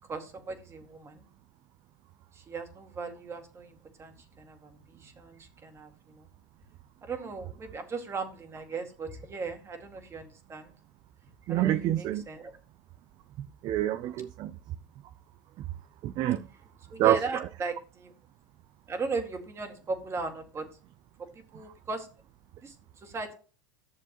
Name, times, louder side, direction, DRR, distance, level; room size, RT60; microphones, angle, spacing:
voice 1, 0.1-1.2 2.3-6.3 7.0-10.7 11.5-12.5 16.9-18.1 18.9-20.7 21.3-22.1 22.6-22.7 23.0-23.4, right 4 dB, 25° right, 2.0 m, -37 dB
voice 2, 11.5-12.2 13.6-14.5 16.0-16.5 17.0-17.2, right 13 dB, 40° right, 0.5 m, -26 dB
11.0 x 6.8 x 3.0 m
hypercardioid pair, 105°, 11 cm